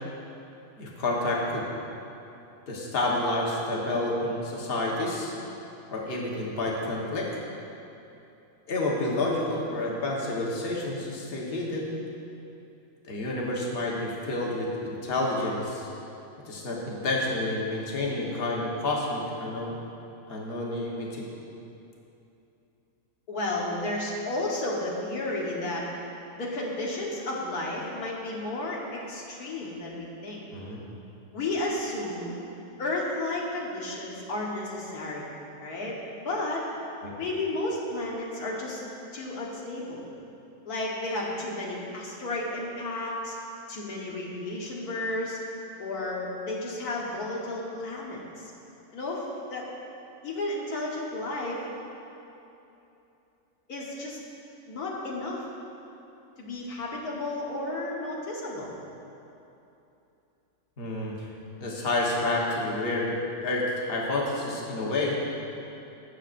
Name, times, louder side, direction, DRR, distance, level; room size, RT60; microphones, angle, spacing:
voice 1, 0.8-1.6 2.7-5.3 5.9-7.3 8.7-11.9 13.0-15.9 16.4-19.8 20.3-21.3 30.5-30.8 37.0-37.1 60.8-61.3 61.6-63.2 63.4-65.2, left 2 dB, 45° left, -3 dB, 1.3 m, -29 dB
voice 2, 23.3-25.8 26.4-30.4 31.3-32.3 32.8-35.3 35.6-35.9 36.2-36.6 37.2-38.8 39.1-40.1 40.6-43.4 43.7-45.4 45.8-48.5 48.9-49.2 49.5-49.6 50.2-51.6 53.7-54.2 54.7-55.4 56.4-58.8, left 2 dB, 90° left, -3 dB, 1.7 m, -32 dB
16.5 x 6.5 x 2.5 m, 2.9 s
omnidirectional pair, 1.6 m